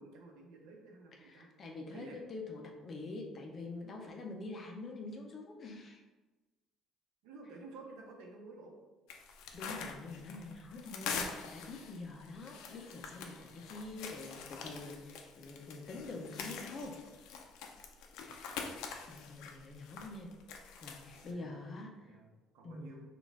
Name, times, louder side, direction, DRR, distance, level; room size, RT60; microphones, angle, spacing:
voice 1, 0.0-1.5 1.8-2.2 7.2-8.7 15.0-15.6 18.2-19.2 21.1-21.5 21.9-22.3 22.5-23.0, right 3 dB, 75° right, 1 dB, 0.8 m, -54 dB
voice 2, 1.2-6.0 9.5-17.0 19.1-20.3 20.6-22.2 22.6-22.9, left 2 dB, 30° left, 1 dB, 0.5 m, -46 dB
sound 1, 9.1-21.3, left 5 dB, 80° left, 0.5 m, -45 dB
4.2 x 2.4 x 3.5 m, 1.2 s
cardioid pair, 175°, 0 cm